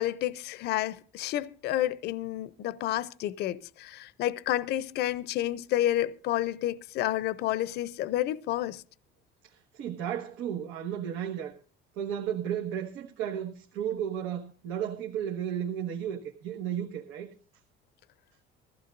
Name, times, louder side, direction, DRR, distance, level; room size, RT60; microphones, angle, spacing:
voice 1, 0.0-8.8, left 13 dB, 55° left, 0.6 m, -30 dB
voice 2, 9.4-11.6 12.0-17.3, right 9 dB, 85° right, 1.5 m, -34 dB
21.5 x 15.0 x 2.6 m
cardioid pair, 175°, 20 cm